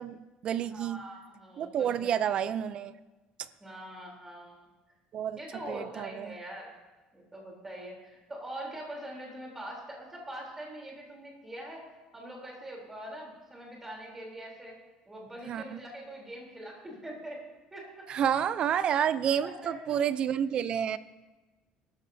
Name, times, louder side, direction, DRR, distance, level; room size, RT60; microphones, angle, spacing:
voice 1, 0.0-1.1 1.6-2.9 5.1-5.4 5.7-6.3 15.5-15.8 18.1-21.0, right 9 dB, 40° right, 15 dB, 0.5 m, -29 dB
voice 2, 0.7-2.2 3.6-4.6 5.4-6.7 7.1-11.8 12.1-14.7 15.1-17.4 17.7-18.1 19.4-20.0, right 1 dB, 10° right, -2 dB, 3.4 m, -43 dB
23.0 x 13.0 x 2.7 m, 1.2 s
cardioid pair, 160°, 3 cm